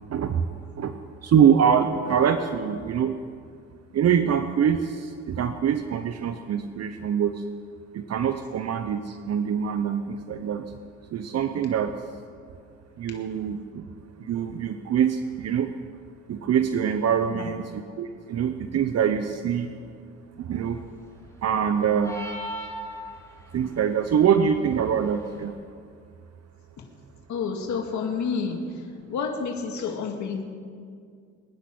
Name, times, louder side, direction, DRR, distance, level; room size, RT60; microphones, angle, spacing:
voice 1, 0.1-0.5 0.8-1.0 1.2-3.1 3.9-7.4 7.9-10.6 11.1-11.9 13.0-13.9 14.3-15.7 16.3-19.7 20.4-20.8 21.4-22.2 23.5-25.5, right 8 dB, 55° right, 8 dB, 0.9 m, -24 dB
sound 1, 22.0-23.5, equal, 10° left, 5.4 m, -35 dB
voice 2, 27.3-28.6 29.1-30.5, left 5 dB, 70° left, 2 dB, 2.1 m, -29 dB
23.5 x 9.9 x 6.1 m, 2.1 s
cardioid pair, 90°, 30 cm